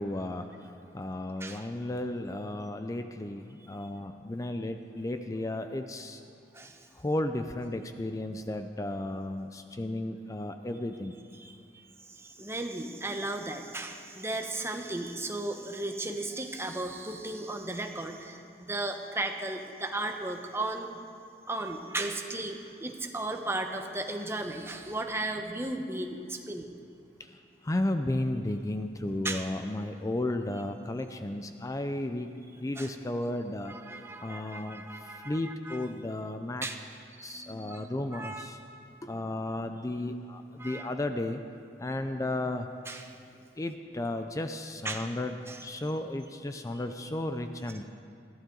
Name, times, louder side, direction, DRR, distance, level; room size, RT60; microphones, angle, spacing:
voice 1, 0.0-6.2 6.9-11.1 27.2-27.4 27.6-32.3 32.6-36.7 37.2-38.6 39.0-41.4 41.8-42.7 43.6-47.9, left 1 dB, 20° left, 7 dB, 0.4 m, -34 dB
voice 2, 6.5-6.9 11.4-11.5 12.1-21.0 21.5-26.7 29.2-29.4 32.8-32.9 33.7-35.8 36.6-36.7 37.2-37.8 38.1-38.6 40.6-40.9 42.9-43.2 44.8-45.1 45.5-45.6, right 2 dB, 15° right, 4 dB, 1.0 m, -35 dB
21.5 x 14.5 x 3.9 m, 2.4 s
head